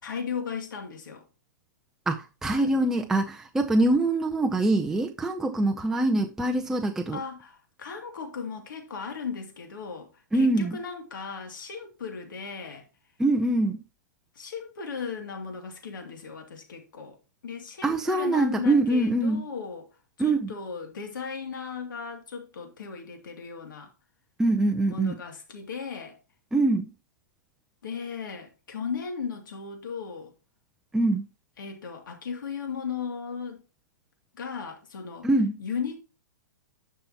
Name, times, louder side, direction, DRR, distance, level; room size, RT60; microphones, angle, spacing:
voice 1, 0.0-1.3 2.4-3.0 7.1-12.9 14.3-17.2 17.4-19.9 20.2-23.9 24.9-26.2 27.8-30.3 31.6-33.6 34.3-35.3 35.6-36.0, left 6 dB, 80° left, 2.5 m, -36 dB
voice 2, 2.1-7.2 10.3-10.8 13.2-13.8 17.8-19.4 20.2-20.5 24.4-25.2 26.5-26.9 30.9-31.2 35.2-35.5, right 2 dB, 5° right, 0.5 m, -24 dB
11.0 x 5.6 x 2.9 m
hypercardioid pair, 145°, 11 cm